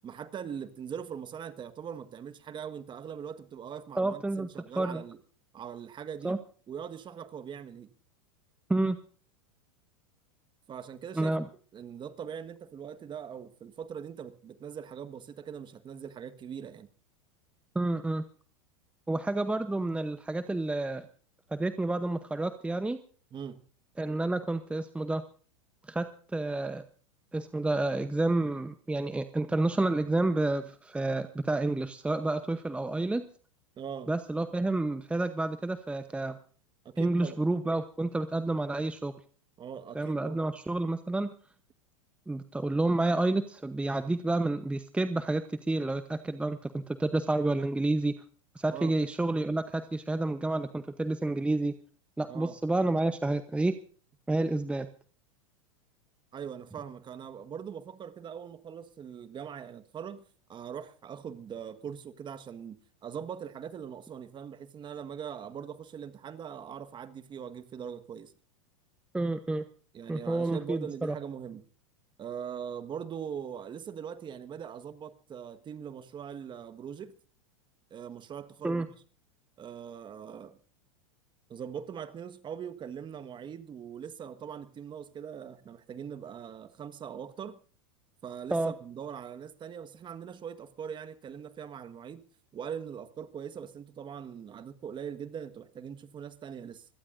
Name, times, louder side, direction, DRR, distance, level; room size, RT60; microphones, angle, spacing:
voice 1, 0.0-5.2 5.5-6.4 6.7-7.9 10.7-11.4 11.7-16.9 23.3-23.6 33.8-34.1 36.8-37.4 39.6-40.4 48.7-49.0 52.3-52.6 56.3-60.2 60.5-62.8 63.0-68.3 69.9-71.6 72.2-77.1 77.9-78.9 79.6-80.6 81.5-87.6 88.2-92.2 92.5-96.8, right 8 dB, 30° right, 1.5 m, -41 dB
voice 2, 3.9-4.5 4.8-5.0 6.2-6.4 8.7-9.0 11.2-11.5 17.7-18.2 19.1-21.0 21.5-23.0 24.0-25.2 25.9-26.8 27.3-33.3 34.1-36.4 37.0-39.1 39.9-41.3 42.3-48.1 48.5-51.7 52.2-53.7 54.3-54.9 69.1-69.6 70.1-71.2 78.6-78.9 88.5-88.7, right 2 dB, 5° right, 0.9 m, -29 dB
25.0 x 17.5 x 2.6 m
hypercardioid pair, 100°, 17 cm